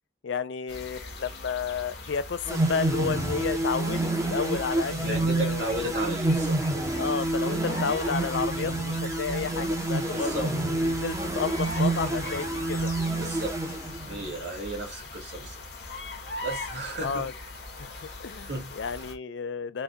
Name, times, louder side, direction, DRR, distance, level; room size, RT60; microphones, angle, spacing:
voice 1, 0.2-5.7 7.0-12.9 17.0-17.3 17.8-17.9 18.2-19.8, left 6 dB, 80° left, 0.4 m, -32 dB
sound 1, 0.7-19.1, left 2 dB, 60° left, 0.9 m, -40 dB
sound 2, 2.5-14.3, right 2 dB, 15° right, 0.6 m, -28 dB
voice 2, 5.0-6.6 10.0-10.5 12.7-15.6 16.4-17.3 17.9-18.2 18.4-18.7, right 2 dB, 65° right, 2.0 m, -35 dB
4.1 x 2.2 x 3.5 m
head